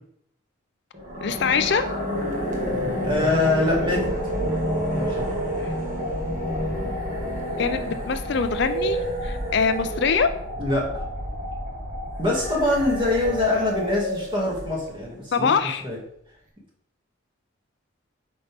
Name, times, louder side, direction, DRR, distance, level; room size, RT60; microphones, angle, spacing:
sound 1, 0.9-15.1, equal, 40° right, 1.5 m, -29 dB
voice 1, 1.2-1.8 5.6-5.7 7.6-10.3 15.3-15.8, left 5 dB, 60° left, 10 dB, 0.4 m, -23 dB
voice 2, 3.0-4.1 4.9-5.3 10.6-10.9 12.2-15.5 15.8-16.0, left 2 dB, 25° right, -3 dB, 2.1 m, -24 dB
7.9 x 5.4 x 3.5 m, 0.69 s
head